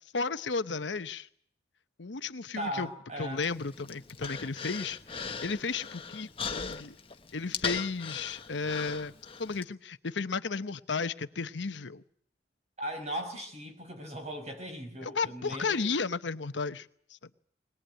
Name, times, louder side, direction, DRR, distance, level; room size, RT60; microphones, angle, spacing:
voice 1, 0.1-1.3 2.0-2.9 3.2-6.9 7.3-9.1 9.4-12.0 15.0-17.2, left 4 dB, 80° left, 12 dB, 0.9 m, -34 dB
voice 2, 2.6-3.4 12.8-16.1, equal, 40° right, 5 dB, 5.4 m, -38 dB
Human voice, 3.4-9.6, left 5 dB, 30° left, 1.2 m, -39 dB
22.0 x 19.5 x 9.0 m, 0.64 s
head